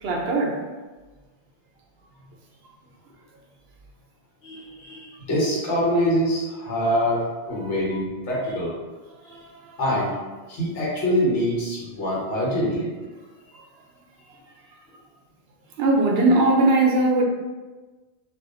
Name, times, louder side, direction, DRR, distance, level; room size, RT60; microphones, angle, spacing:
voice 1, 0.0-0.6 7.6-7.7 9.2-9.8 15.8-17.2, right 2 dB, 65° right, -1 dB, 0.8 m, -20 dB
voice 2, 4.4-8.7 9.8-10.1 10.5-12.9 13.5-13.6, equal, 90° left, -6 dB, 1.3 m, -24 dB
2.6 x 2.4 x 3.6 m, 1.3 s
omnidirectional pair, 1.2 m